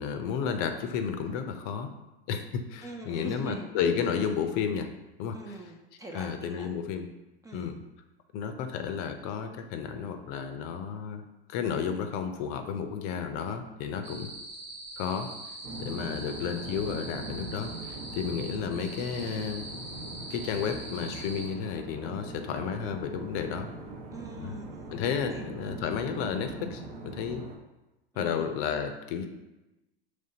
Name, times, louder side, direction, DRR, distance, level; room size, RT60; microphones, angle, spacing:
voice 1, 0.0-1.9 2.3-4.9 5.2-5.6 6.1-7.1 7.5-7.8 8.3-11.2 11.5-14.3 15.0-15.3 15.8-19.7 20.3-23.7 24.4-24.5 24.9-27.4 28.2-29.3, left 7 dB, 50° left, 7 dB, 0.6 m, -32 dB
voice 2, 2.8-3.7 5.3-6.7 7.4-7.7 16.0-16.3 24.1-25.5 28.1-28.5, right 2 dB, 10° right, 1 dB, 0.4 m, -43 dB
sound 1, 14.0-21.5, right 2 dB, 85° right, 1.5 m, -43 dB
sound 2, 15.6-27.6, right 2 dB, 50° right, 0.9 m, -41 dB
5.1 x 3.3 x 2.8 m, 1.0 s
hypercardioid pair, 100°, 30 cm